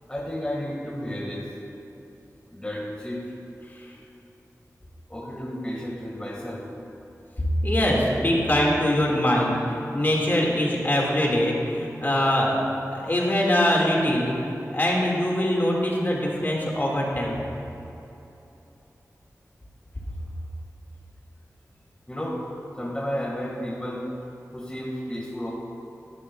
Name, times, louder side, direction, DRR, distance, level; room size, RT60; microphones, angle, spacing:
voice 1, 0.1-1.5 2.5-3.2 5.1-6.7 22.1-22.4 22.8-24.1 24.5-25.5, equal, 15° left, -4 dB, 1.7 m, -32 dB
voice 2, 7.6-12.6 12.9-14.4 14.7-17.4, left 1 dB, 35° left, -3 dB, 2.0 m, -23 dB
18.0 x 11.0 x 2.3 m, 3.0 s
wide cardioid pair, 75°, 6 cm